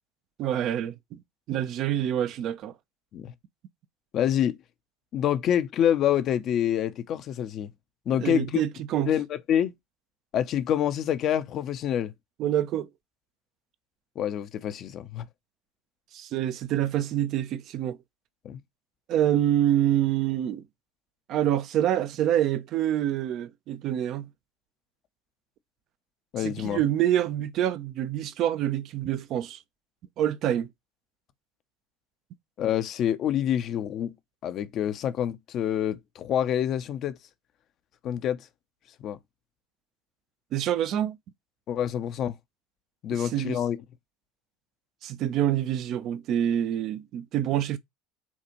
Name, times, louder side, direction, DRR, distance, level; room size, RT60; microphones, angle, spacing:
voice 1, 0.4-1.2 1.5-2.7 8.1-9.1 12.4-12.9 16.1-18.0 19.1-20.6 21.3-24.3 26.4-29.6 30.2-30.7 40.5-41.2 43.1-43.6 45.0-47.8, right 11 dB, 50° right, 0.6 m, -26 dB
voice 2, 4.1-4.6 5.1-7.7 8.1-8.6 9.1-9.7 10.3-12.1 14.2-15.3 18.4-18.6 26.3-26.8 32.6-34.1 34.4-37.2 38.0-38.5 39.0-39.2 41.7-42.3 43.0-43.8, left 10 dB, 50° left, 0.7 m, -27 dB
7.1 x 2.5 x 3.0 m
hypercardioid pair, 75°, 0 cm